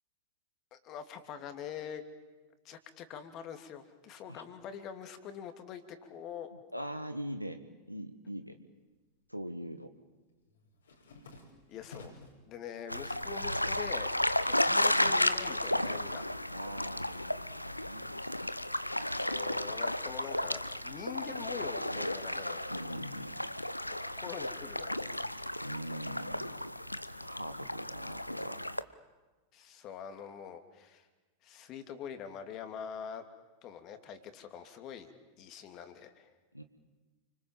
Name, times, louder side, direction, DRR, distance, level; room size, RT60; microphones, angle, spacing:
voice 1, 0.7-2.0 2.6-6.5 11.7-12.1 12.5-14.1 14.4-16.2 19.2-22.7 24.0-25.2 29.5-31.1 31.4-33.2 33.6-35.1 35.4-36.3, left 8 dB, 35° left, 8 dB, 2.8 m, -44 dB
voice 2, 6.7-7.6 7.9-8.6 9.3-9.9 16.5-18.1 22.7-23.3 25.6-26.6 27.2-28.6 36.5-36.6, equal, 90° right, 7 dB, 1.4 m, -41 dB
sound 1, 8.6-9.4 9.7-12.5 12.9-13.6 13.9-15.5, left 3 dB, 70° left, 5.3 m, -55 dB
sound 2, 12.9-28.8, left 1 dB, 85° left, 0.8 m, -33 dB
29.5 x 25.5 x 7.6 m, 1.2 s
figure-of-eight pair, 90°, 0 cm